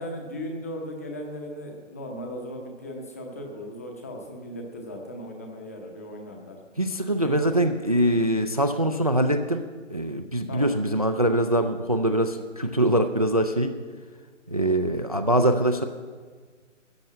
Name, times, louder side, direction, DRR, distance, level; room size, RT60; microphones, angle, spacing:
voice 1, 0.0-6.6 7.2-7.5 10.5-10.7 14.6-14.8, equal, 10° left, 2 dB, 0.7 m, -37 dB
voice 2, 6.8-9.6 9.9-13.7 14.5-15.8, right 1 dB, 30° right, 8 dB, 0.4 m, -23 dB
13.5 x 6.8 x 9.3 m, 1.5 s
figure-of-eight pair, 160°, 38 cm